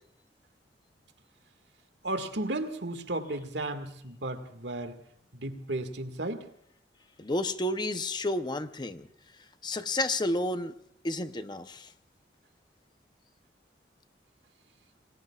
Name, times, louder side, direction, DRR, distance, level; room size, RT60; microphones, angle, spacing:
voice 1, 2.0-5.0 5.3-6.5, right 2 dB, 75° right, 8 dB, 1.9 m, -34 dB
voice 2, 7.2-9.1 9.6-10.7 11.0-11.9, left 1 dB, 25° left, 10 dB, 0.7 m, -31 dB
28.0 x 20.5 x 2.4 m, 0.71 s
head